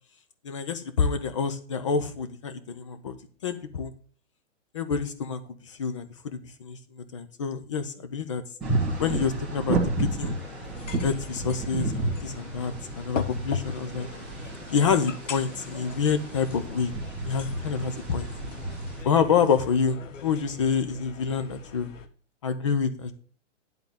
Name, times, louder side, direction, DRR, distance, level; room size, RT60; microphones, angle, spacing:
voice 1, 0.4-3.2 3.4-3.9 4.7-5.4 5.7-8.4 9.0-10.4 11.0-14.1 14.7-16.9 17.3-18.3 19.0-21.9 22.4-23.1, left 6 dB, 25° left, 11 dB, 0.6 m, -27 dB
sound 1, 8.6-19.0, right 2 dB, ahead, 1.5 m, -32 dB
sound 2, 10.2-22.1, left 6 dB, 80° left, 1.3 m, -40 dB
10.5 x 4.0 x 7.1 m, 0.43 s
hypercardioid pair, 170°, 37 cm